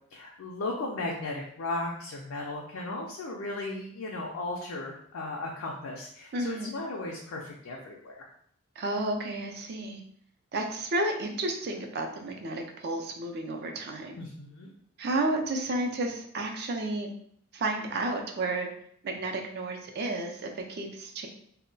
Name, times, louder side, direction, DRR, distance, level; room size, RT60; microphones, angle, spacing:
voice 1, 0.1-8.3 14.2-14.7, left 2 dB, 85° left, -2 dB, 0.4 m, -36 dB
voice 2, 6.3-6.7 8.8-10.0 10.5-14.2 15.0-17.1 17.5-18.7 19.0-21.3, right 2 dB, 50° right, 3 dB, 0.4 m, -32 dB
2.2 x 2.1 x 3.8 m, 0.66 s
head